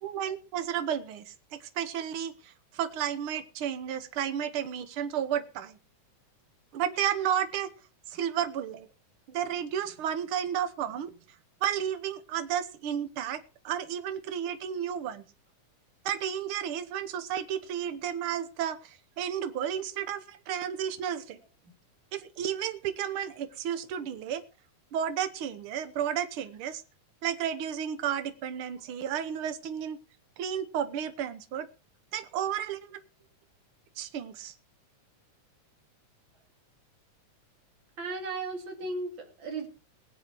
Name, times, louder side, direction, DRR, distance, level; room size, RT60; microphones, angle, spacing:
voice 1, 0.0-5.8 6.7-7.7 8.1-8.9 9.3-11.1 11.6-15.2 16.0-21.4 22.1-24.4 24.9-26.8 27.2-30.0 30.4-31.7 32.1-32.9 34.0-34.5, right 9 dB, 60° right, 10 dB, 1.5 m, -32 dB
voice 2, 38.0-39.7, right 3 dB, 40° right, 2 dB, 3.4 m, -35 dB
21.0 x 7.9 x 4.6 m, 0.34 s
omnidirectional pair, 3.6 m